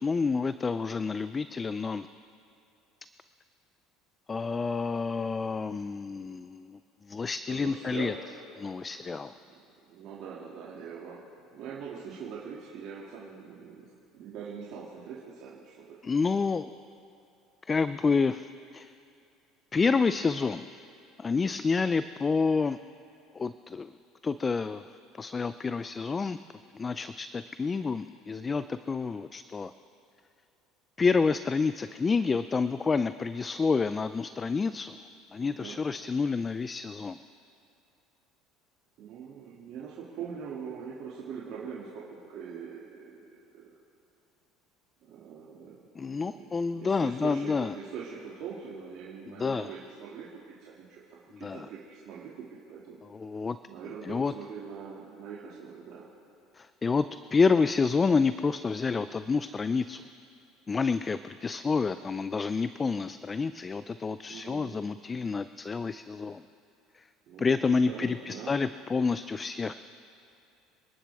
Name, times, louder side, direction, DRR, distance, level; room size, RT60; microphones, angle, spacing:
voice 1, 0.0-2.1 4.3-6.8 7.1-8.1 8.6-9.3 16.0-16.7 17.7-18.9 19.7-20.8 21.2-22.8 23.3-23.9 24.2-24.9 25.2-26.4 26.7-29.7 31.0-35.0 35.3-37.2 46.0-47.7 49.4-49.7 51.4-51.7 53.1-53.6 54.0-54.3 56.5-60.0 60.7-66.4 66.9-67.1 67.4-69.7, left 4 dB, 25° left, 13 dB, 0.4 m, -28 dB
voice 2, 7.5-8.1 8.6-8.7 9.0-9.2 9.5-9.6 9.9-11.2 11.5-16.0 35.3-35.8 39.0-43.7 45.0-45.8 46.1-53.0 53.7-56.1 64.3-64.7 67.3-68.5, right 6 dB, 60° right, -6 dB, 2.3 m, -43 dB
27.5 x 11.5 x 3.5 m, 2.5 s
supercardioid pair, 100°, 0 cm